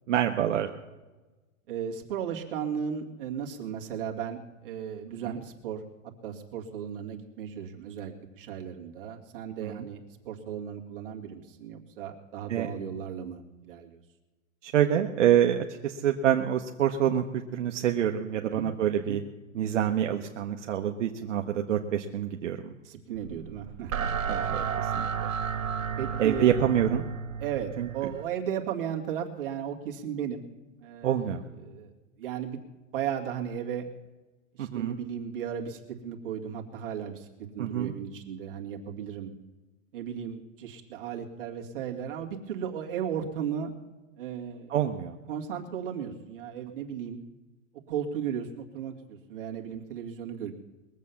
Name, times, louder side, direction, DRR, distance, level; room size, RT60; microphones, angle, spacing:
voice 1, 0.1-0.7 5.2-5.4 9.6-9.9 12.5-12.7 14.6-19.2 19.5-22.7 24.3-25.1 26.2-27.0 27.8-27.9 31.0-31.4 34.6-35.0 37.6-37.9 44.7-45.2, right 10 dB, 65° right, 3 dB, 1.1 m, -26 dB
voice 2, 1.7-14.0 18.6-18.7 19.1-19.2 22.8-23.9 26.0-26.5 27.4-30.4 30.8-31.9 32.2-32.6 32.9-33.9 34.5-37.3 37.5-39.3 39.9-43.7 44.2-44.8 45.3-47.2 47.9-50.5, right 8 dB, 40° right, 0 dB, 2.2 m, -35 dB
sound 1, 23.2-28.2, right 7 dB, 90° right, 1.6 m, -32 dB
21.5 x 7.5 x 7.0 m, 1.2 s
supercardioid pair, 175°, 40 cm